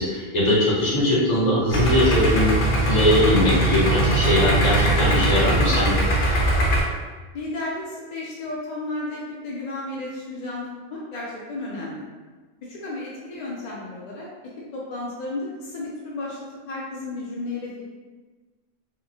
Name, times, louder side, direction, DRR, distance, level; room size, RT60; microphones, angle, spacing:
voice 1, 0.0-2.6 2.9-6.0, left 1 dB, 40° left, -7 dB, 0.8 m, -21 dB
Idling, 1.7-6.8, right 2 dB, 85° left, 0.9 m, -21 dB
voice 2, 7.3-12.0 12.6-14.3 14.7-16.4 16.7-17.9, left 2 dB, 65° left, -5 dB, 0.4 m, -33 dB
2.8 x 2.0 x 2.6 m, 1.3 s
omnidirectional pair, 1.2 m